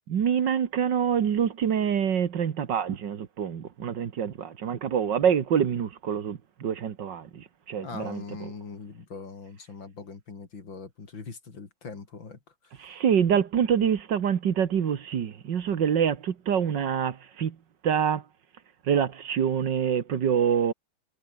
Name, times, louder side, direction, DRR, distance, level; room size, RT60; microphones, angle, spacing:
voice 1, 0.1-8.5 12.8-17.6 17.8-18.2 18.9-20.7, right 8 dB, 65° right, 2.0 m, -26 dB
voice 2, 7.8-12.4 12.6-13.0, left 4 dB, 75° left, 4.3 m, -41 dB
omnidirectional pair, 2.1 m